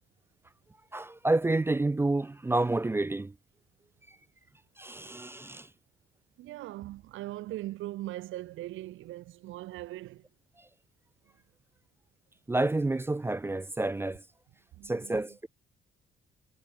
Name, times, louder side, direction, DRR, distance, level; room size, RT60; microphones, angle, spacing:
voice 1, 0.9-3.3 4.8-5.7 12.5-14.2 14.9-15.5, right 2 dB, 10° right, 0.3 m, -29 dB
voice 2, 6.4-10.2 14.7-15.2, right 16 dB, 90° right, 1.4 m, -40 dB
cardioid pair, 90°, 20 cm